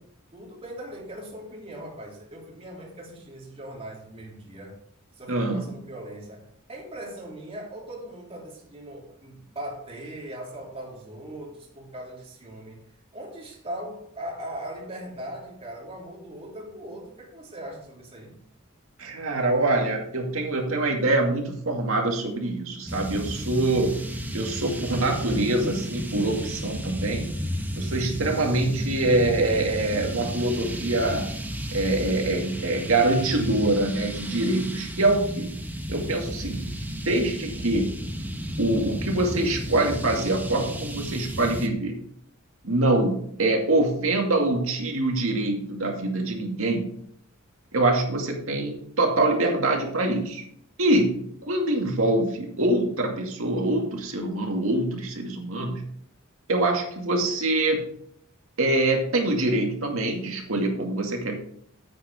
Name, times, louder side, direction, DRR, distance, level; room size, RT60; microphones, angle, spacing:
voice 1, 0.3-4.8 5.1-12.8 13.1-18.4, right 1 dB, 30° right, -2 dB, 3.1 m, -39 dB
voice 2, 5.3-5.7 19.0-24.0 24.3-27.3 27.7-31.3 31.7-35.5 35.9-36.7 37.0-37.9 38.6-42.0 42.6-46.9 47.7-50.4 50.8-55.8 56.5-57.8 58.6-61.4, right 2 dB, 70° right, 1 dB, 2.2 m, -24 dB
sound 1, 22.9-41.7, right 1 dB, 10° right, 1.0 m, -33 dB
9.5 x 8.5 x 3.6 m, 0.65 s
head